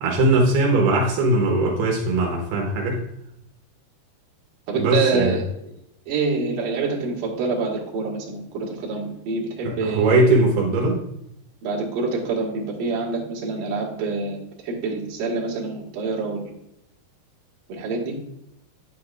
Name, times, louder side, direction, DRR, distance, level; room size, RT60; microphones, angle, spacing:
voice 1, 0.0-3.0 4.8-5.4 9.6-11.0, right 2 dB, 80° right, 0 dB, 3.0 m, -20 dB
voice 2, 4.7-5.4 6.1-10.2 11.6-14.4 14.6-16.4 17.7-18.2, right 4 dB, 65° right, -3 dB, 3.0 m, -26 dB
9.4 x 8.4 x 2.4 m, 0.80 s
omnidirectional pair, 4.6 m